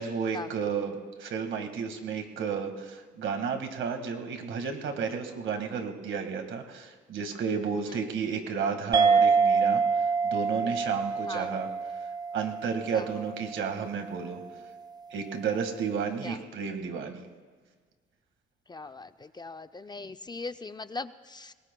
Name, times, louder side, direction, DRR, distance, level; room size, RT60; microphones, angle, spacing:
voice 1, 0.0-11.7 12.3-14.4 15.1-17.2, right 6 dB, 75° right, 5 dB, 1.9 m, -32 dB
sound 1, 8.9-13.8, right 5 dB, 20° right, 0.7 m, -26 dB
voice 2, 18.7-19.1 19.4-21.5, left 3 dB, 20° left, 11 dB, 0.5 m, -39 dB
28.0 x 21.0 x 2.3 m, 1.5 s
cardioid pair, 90°, 20 cm